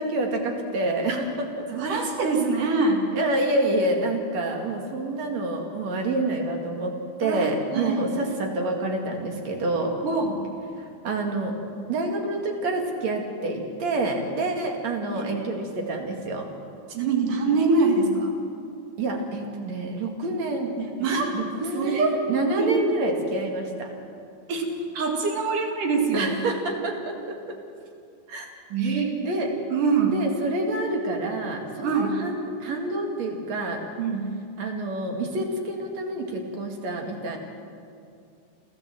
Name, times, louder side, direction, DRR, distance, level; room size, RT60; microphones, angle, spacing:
voice 1, 0.0-1.7 2.6-2.8 3.1-10.0 10.8-11.6 11.9-16.5 19.0-20.9 21.3-23.9 26.1-27.6 28.3-28.5 29.2-29.5 30.1-33.8 34.6-37.4, right 2 dB, 60° right, 2 dB, 3.4 m, -28 dB
voice 2, 1.7-3.0 7.2-7.5 7.7-8.0 10.0-10.4 15.2-15.5 16.9-18.3 21.0-21.4 21.7-22.1 22.6-22.7 24.5-24.7 25.0-26.3 28.7-29.2 29.7-30.2 30.8-30.9 31.8-32.2 34.0-34.3, right 4 dB, 90° right, 2 dB, 3.9 m, -24 dB
29.0 x 13.5 x 7.7 m, 2.4 s
omnidirectional pair, 3.6 m